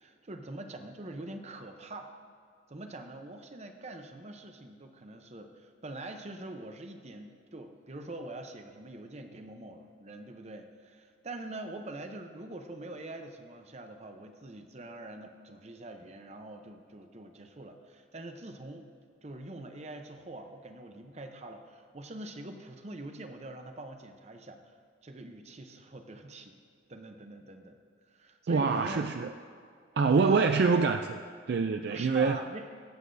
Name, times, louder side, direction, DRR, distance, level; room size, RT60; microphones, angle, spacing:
voice 1, 0.0-2.1 2.7-18.9 19.2-24.7 25.0-26.6 26.9-27.8 28.1-29.0 30.1-30.5 31.9-32.7, right 2 dB, 35° right, 6 dB, 0.7 m, -44 dB
voice 2, 28.5-29.3 30.0-31.2 31.5-32.4, right 4 dB, 55° right, 6 dB, 0.3 m, -25 dB
22.0 x 8.3 x 2.7 m, 2.3 s
head